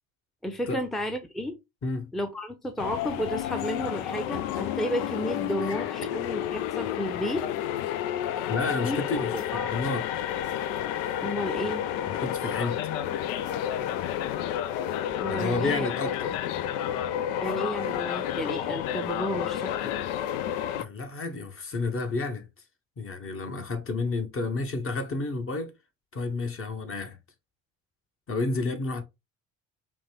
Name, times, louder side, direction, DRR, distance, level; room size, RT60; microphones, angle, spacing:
voice 1, 0.4-1.6 2.1-7.4 8.8-9.0 9.3-9.8 11.2-11.8 15.2-15.9 17.4-19.9, equal, ahead, 0.7 m, -32 dB
sound 1, 2.8-20.8, left 11 dB, 75° left, 0.5 m, -30 dB
voice 2, 5.6-5.9 8.5-10.1 12.0-12.8 15.3-16.3 20.8-22.5 23.0-25.7 26.1-27.2 28.3-29.0, left 3 dB, 35° left, 1.1 m, -31 dB
5.1 x 2.2 x 3.4 m
hypercardioid pair, 60°, 39 cm